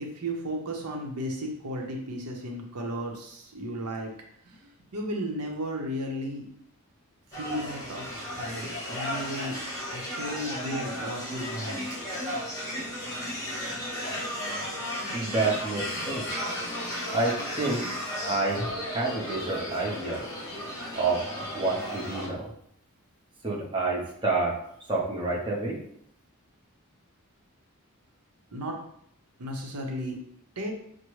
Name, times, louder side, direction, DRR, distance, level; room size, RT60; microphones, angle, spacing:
voice 1, 0.0-4.1 4.5-6.5 7.3-9.6 9.9-11.8 28.5-28.8 29.4-30.2 30.6-30.7, equal, 90° right, 1 dB, 0.8 m, -34 dB
sound 1, 7.3-22.3, equal, 15° left, 1.2 m, -34 dB
voice 2, 15.1-16.3 17.1-17.9 18.3-20.2 20.9-21.3 21.5-22.5 23.4-24.6 24.9-25.8, right 3 dB, 20° right, -4 dB, 0.8 m, -28 dB
6.2 x 2.1 x 3.1 m, 0.69 s
head